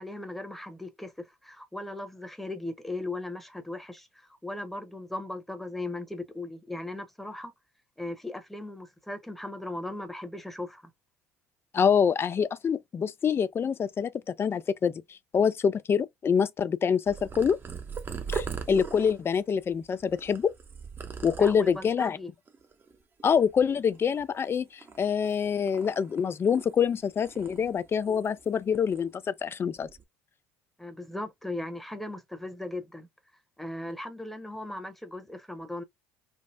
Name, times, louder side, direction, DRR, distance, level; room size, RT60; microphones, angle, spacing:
voice 1, 0.0-7.5 8.0-10.8 21.4-22.3 30.8-33.1 33.6-35.8, left 2 dB, 5° left, 0.9 m, -38 dB
voice 2, 11.7-17.6 18.3-20.5 21.2-22.2 23.2-24.7 25.0-29.1 29.4-29.9, left 7 dB, 30° left, 0.4 m, -26 dB
Purr, 17.1-21.9 22.5-22.9 23.2-24.4 24.8-26.9 27.2-28.5 28.7-29.0 29.7-30.0, right 5 dB, 30° right, 0.7 m, -40 dB
3.4 x 2.0 x 2.6 m
hypercardioid pair, 65°, 8 cm